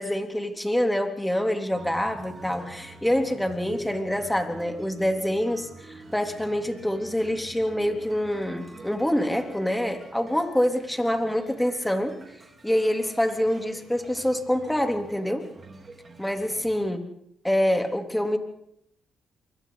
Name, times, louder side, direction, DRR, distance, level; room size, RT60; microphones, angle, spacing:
voice 1, 0.0-12.2 12.6-15.5 16.2-17.0 17.4-18.4, equal, 5° left, 5 dB, 3.5 m, -26 dB
sound 1, 1.7-16.8, right 2 dB, 40° right, 4.7 m, -45 dB
28.0 x 24.0 x 4.1 m, 0.73 s
supercardioid pair, 65°, 0 cm